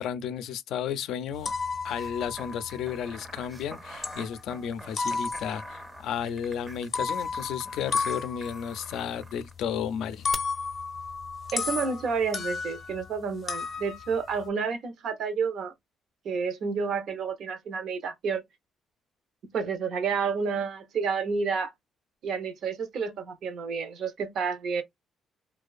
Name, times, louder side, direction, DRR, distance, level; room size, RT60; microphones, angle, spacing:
voice 1, 0.0-1.5 1.8-10.3, left 8 dB, 80° left, 0.4 m, -33 dB
sound 1, 1.3-3.7 4.0-4.6 5.0-5.9 6.8-13.1 13.5-14.5, left 4 dB, 35° left, 0.6 m, -33 dB
sound 2, 1.8-9.5 10.3-10.4, right 1 dB, 15° right, 0.5 m, -45 dB
voice 2, 11.5-15.7 16.2-18.4 19.4-21.7 22.2-24.8, right 5 dB, 65° right, 0.6 m, -30 dB
2.5 x 2.2 x 2.3 m
cardioid pair, 135°, 0 cm